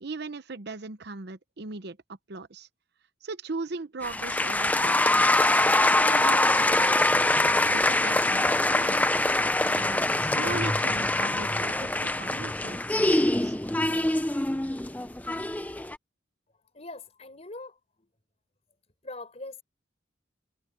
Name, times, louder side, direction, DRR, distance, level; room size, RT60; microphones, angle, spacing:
voice 1, 0.0-2.7 3.2-5.5 5.9-7.2 7.7-9.0 9.7-13.6, right 3 dB, 55° right, 0.8 m, -39 dB
sound 1, 4.0-16.0, left 2 dB, 10° left, 0.6 m, -24 dB
voice 2, 16.7-17.8 19.0-19.6, left 2 dB, 35° left, 4.2 m, -41 dB
head